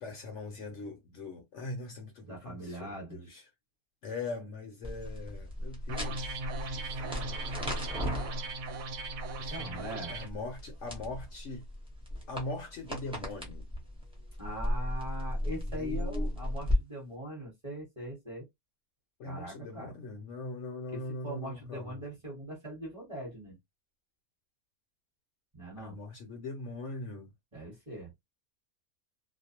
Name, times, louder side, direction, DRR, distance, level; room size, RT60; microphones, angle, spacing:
voice 1, 0.0-3.5 4.0-8.2 9.4-11.6 12.3-13.7 15.4-16.3 19.2-22.0 25.8-27.3, left 2 dB, 65° left, 0.8 m, -42 dB
voice 2, 2.2-3.2 9.5-10.2 14.4-18.5 19.2-19.9 20.9-23.6 25.5-26.0 27.5-28.1, equal, 25° right, 1.0 m, -41 dB
sound 1, 4.8-16.8, left 1 dB, 5° right, 0.6 m, -36 dB
sound 2, 5.9-10.3, right 3 dB, 75° right, 1.0 m, -39 dB
2.5 x 2.0 x 2.8 m
omnidirectional pair, 1.6 m